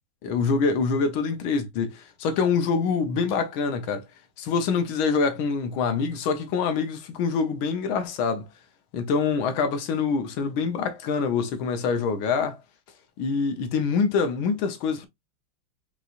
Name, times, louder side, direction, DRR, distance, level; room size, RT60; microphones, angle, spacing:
voice 1, 0.2-4.0 4.4-8.5 8.9-12.6 13.2-15.1, left 5 dB, 75° left, 1.6 m, -25 dB
5.5 x 3.0 x 2.4 m
omnidirectional pair, 2.3 m